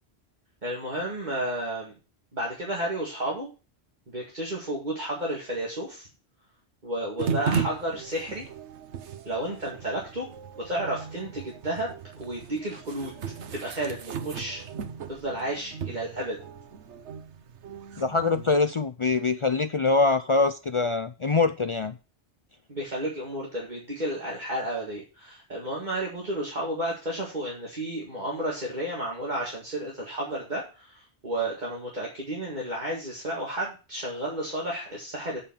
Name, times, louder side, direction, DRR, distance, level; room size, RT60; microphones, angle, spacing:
voice 1, 0.6-1.9 2.3-3.5 4.1-6.1 6.8-8.5 9.3-10.3 10.6-11.9 12.2-13.1 13.5-14.6 15.1-16.4 22.7-35.4, right 1 dB, 40° right, 2.1 m, -32 dB
sound 1, 7.2-18.5, right 6 dB, 90° right, 1.2 m, -36 dB
voice 2, 18.0-21.9, left 3 dB, 50° left, 0.4 m, -24 dB
7.0 x 5.4 x 7.2 m
omnidirectional pair, 1.1 m